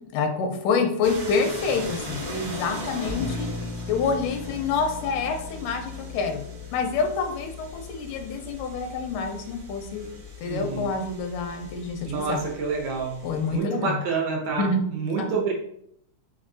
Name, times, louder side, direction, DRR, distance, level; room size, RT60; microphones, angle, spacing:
voice 1, 0.1-3.5 3.9-6.4 6.7-10.1 10.4-12.4 13.2-14.0 14.6-14.8 15.2-15.3, left 4 dB, 90° left, 5 dB, 2.2 m, -27 dB
sound 1, 1.0-13.6, equal, 45° right, 1.1 m, -40 dB
Bass guitar, 3.1-12.9, left 5 dB, 10° right, 0.7 m, -40 dB
voice 2, 10.4-10.9 12.0-15.5, right 5 dB, 70° right, 0 dB, 1.8 m, -28 dB
5.2 x 3.8 x 2.6 m, 0.72 s
omnidirectional pair, 3.6 m